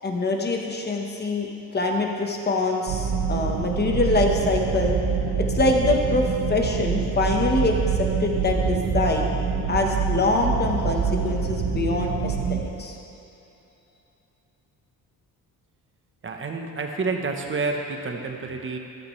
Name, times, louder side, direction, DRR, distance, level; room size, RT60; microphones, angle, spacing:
voice 1, 0.0-9.3 9.7-13.0, left 2 dB, 30° left, 1 dB, 1.3 m, -24 dB
sound 1, 2.9-12.6, right 6 dB, 60° right, 1.1 m, -26 dB
voice 2, 16.2-18.8, right 4 dB, 35° right, 3 dB, 1.1 m, -29 dB
14.5 x 11.5 x 3.3 m, 2.9 s
cardioid pair, 130°, 35 cm